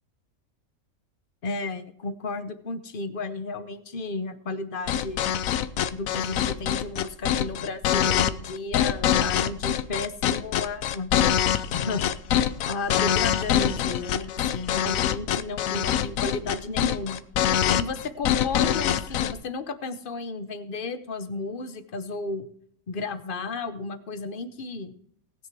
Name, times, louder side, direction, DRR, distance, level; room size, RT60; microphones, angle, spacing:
voice 1, 1.4-5.2 5.9-11.1 11.5-12.0 12.6-17.2 17.7-22.5 22.9-24.9, left 3 dB, 45° left, 12 dB, 1.1 m, -33 dB
sound 1, 4.9-19.3, left 10 dB, 85° left, 1.1 m, -24 dB
19.0 x 6.8 x 4.8 m, 0.65 s
omnidirectional pair, 1.4 m